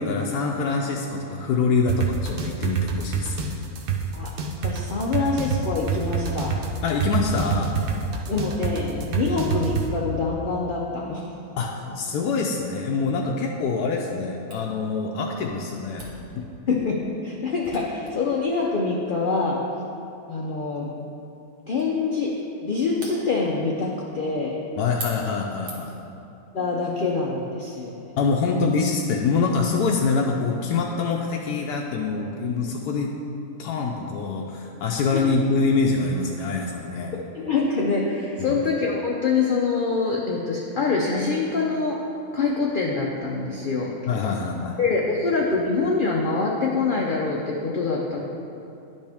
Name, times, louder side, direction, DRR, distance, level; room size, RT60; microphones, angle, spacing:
voice 1, 0.0-3.6 6.8-7.8 11.6-16.5 24.8-25.9 28.2-33.1 33.6-37.2 38.4-38.6 44.1-44.8, left 4 dB, 80° left, 0 dB, 1.1 m, -25 dB
sound 1, 1.9-9.9, right 7 dB, 55° right, 0.6 m, -25 dB
voice 2, 4.6-6.6 8.3-11.3 16.7-16.9 17.2-19.6 20.3-20.9 21.7-22.3 22.6-24.6 26.5-28.0 35.1-35.2 37.3-42.0 42.3-43.9 44.8-48.2, left 4 dB, 65° left, -2 dB, 0.5 m, -25 dB
Camera, 14.5-26.1, right 1 dB, 85° right, 1.9 m, -46 dB
10.5 x 5.3 x 3.5 m, 2.8 s
omnidirectional pair, 1.7 m